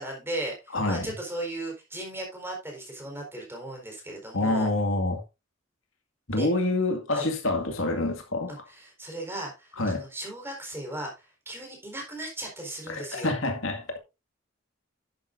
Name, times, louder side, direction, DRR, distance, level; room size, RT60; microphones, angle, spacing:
voice 1, 0.0-4.7 6.3-6.5 7.1-7.3 8.5-13.3, right 1 dB, 10° right, 4.4 m, -36 dB
voice 2, 0.7-1.1 4.3-5.2 6.3-8.5 9.8-10.0 12.9-14.0, left 2 dB, 75° left, 2.1 m, -27 dB
11.0 x 9.6 x 2.6 m
head